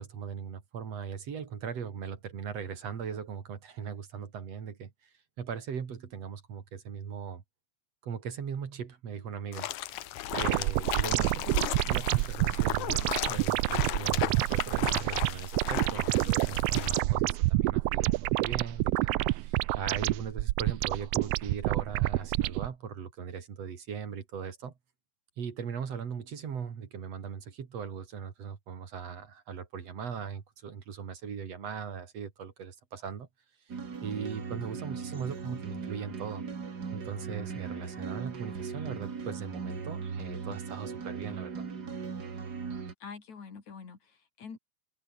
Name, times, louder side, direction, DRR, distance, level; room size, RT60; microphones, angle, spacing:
voice 1, 0.0-7.4 8.0-24.7 25.4-33.3 33.7-33.8 34.0-36.4 36.9-41.7, right 7 dB, 60° right, 3.5 m, -39 dB
sound 1, 9.5-17.0, left 14 dB, 90° left, 2.4 m, -36 dB
sound 2, 10.3-22.7, right 18 dB, 80° right, 1.5 m, -28 dB
sound 3, 33.7-42.9, right 5 dB, 35° right, 2.4 m, -38 dB
voice 2, 43.0-44.6, left 5 dB, 70° left, 5.1 m, -45 dB
omnidirectional pair, 3.3 m